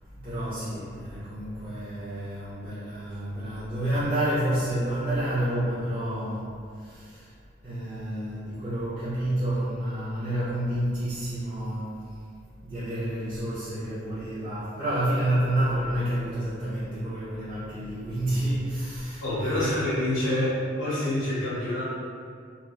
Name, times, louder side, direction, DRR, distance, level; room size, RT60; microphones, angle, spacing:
voice 1, 0.1-7.3 7.6-12.0 12.6-19.7, right 1 dB, 30° right, -12 dB, 0.5 m, -29 dB
voice 2, 19.2-21.8, left 1 dB, 80° left, -10 dB, 0.7 m, -27 dB
3.1 x 2.3 x 2.3 m, 2.2 s
head